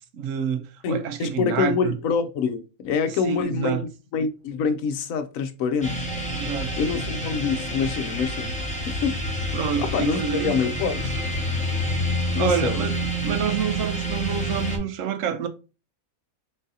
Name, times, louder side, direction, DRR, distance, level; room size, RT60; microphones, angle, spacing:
voice 1, 0.1-1.9 3.2-3.8 6.3-6.8 7.8-7.9 9.5-10.6 12.3-12.9 13.2-15.5, right 7 dB, 70° right, 0.9 m, -27 dB
voice 2, 0.8-3.9 4.1-6.0 6.8-8.5 8.9-9.3 9.8-11.1 12.3-12.8, left 5 dB, 70° left, 1.0 m, -26 dB
sound 1, 5.8-14.8, equal, 5° left, 0.7 m, -28 dB
3.9 x 3.8 x 2.7 m
omnidirectional pair, 1.5 m